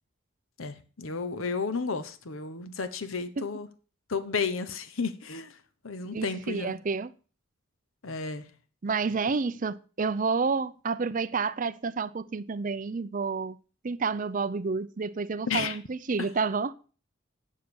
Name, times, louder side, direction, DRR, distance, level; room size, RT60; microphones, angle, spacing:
voice 1, 0.6-3.7 4.1-5.6 5.8-6.7 8.0-8.4 15.5-15.8, left 5 dB, 85° left, 1.0 m, -32 dB
voice 2, 6.1-7.1 8.8-13.6 13.8-16.7, right 4 dB, 40° right, 0.5 m, -29 dB
9.7 x 6.6 x 6.9 m
head